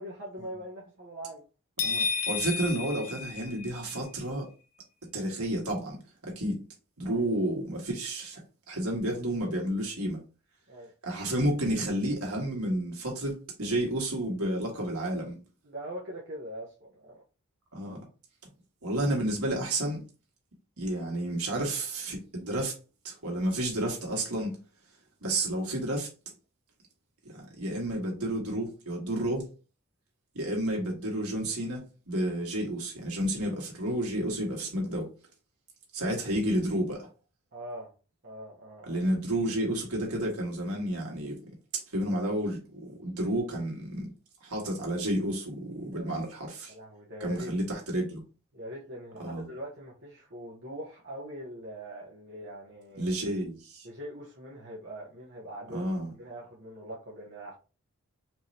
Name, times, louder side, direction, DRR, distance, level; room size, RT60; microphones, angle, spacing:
voice 1, 0.0-1.4 7.0-7.2 10.7-10.9 15.6-17.2 37.5-37.9 38.2-39.1 45.9-46.2 46.7-47.6 48.5-53.1 53.8-55.9 56.2-57.6, equal, 50° right, 1.0 m, -42 dB
sound 1, 1.8-4.0, left 5 dB, 75° left, 0.8 m, -31 dB
voice 2, 1.8-4.5 5.1-6.6 7.0-8.4 8.7-10.2 11.0-15.4 17.7-18.0 18.8-20.0 20.8-22.7 23.0-24.6 25.2-26.1 27.3-29.5 30.4-35.1 35.9-37.1 38.8-41.4 41.7-44.1 44.4-46.7 47.2-48.2 49.2-49.4 53.0-53.9 55.7-56.1, right 1 dB, 80° right, 1.8 m, -31 dB
4.6 x 3.2 x 2.8 m
head